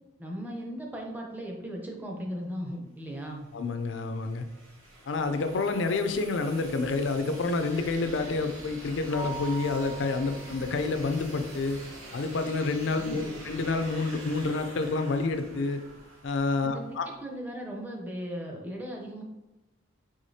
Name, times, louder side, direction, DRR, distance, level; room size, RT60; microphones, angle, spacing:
voice 1, 0.2-3.5 13.0-13.4 16.6-19.2, equal, 10° right, -1 dB, 0.6 m, -37 dB
sound 1, 3.3-17.0, right 1 dB, 85° right, 1.1 m, -46 dB
voice 2, 3.5-4.4 5.1-11.8 12.1-15.8 16.2-17.1, left 3 dB, 70° left, 8 dB, 0.4 m, -28 dB
Mallet percussion, 9.1-10.9, right 3 dB, 55° right, 0.6 m, -41 dB
4.9 x 3.5 x 2.7 m, 1.0 s
head